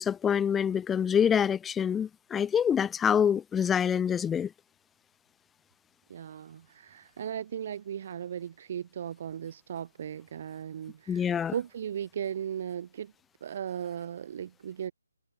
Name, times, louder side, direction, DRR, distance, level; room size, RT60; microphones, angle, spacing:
voice 1, 0.0-4.5 11.1-11.5, left 8 dB, 5° left, 1.1 m, -26 dB
voice 2, 6.1-13.1 13.4-14.9, right 9 dB, 35° right, 6.4 m, -37 dB
figure-of-eight pair, 145°, 0 cm